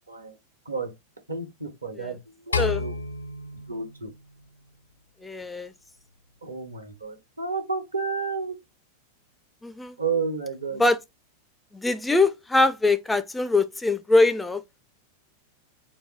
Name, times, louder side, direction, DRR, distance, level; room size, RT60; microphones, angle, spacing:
voice 1, 1.3-3.0 3.7-4.1 6.4-8.5 10.0-10.8, right 4 dB, 80° right, 1.2 m, -31 dB
sound 1, 2.5-4.9, left 4 dB, 75° left, 0.4 m, -31 dB
voice 2, 5.2-5.7 9.6-9.9 10.8-11.0 11.7-14.6, left 2 dB, 5° left, 0.4 m, -22 dB
4.0 x 2.2 x 4.0 m
figure-of-eight pair, 90°, 0 cm